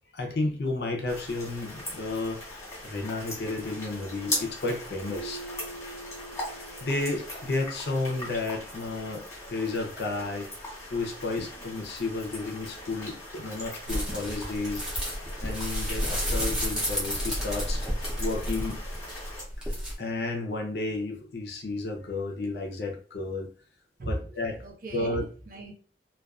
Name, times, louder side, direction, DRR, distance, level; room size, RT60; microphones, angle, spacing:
voice 1, 0.2-2.4 2.8-5.4 6.8-9.2 9.5-10.5 10.9-14.8 15.4-17.8 18.2-18.8 20.0-23.5 24.1-24.6 24.9-25.2, left 2 dB, 60° left, 0.5 m, -32 dB
sound 1, 1.1-19.4, left 1 dB, 15° left, 0.9 m, -40 dB
Keyboard (musical), 5.1-7.9, right 3 dB, 65° right, 1.0 m, -44 dB
sound 2, 13.9-19.9, equal, 5° right, 0.6 m, -31 dB
voice 2, 24.0-25.7, right 1 dB, 50° right, 0.6 m, -37 dB
2.3 x 2.2 x 2.3 m
head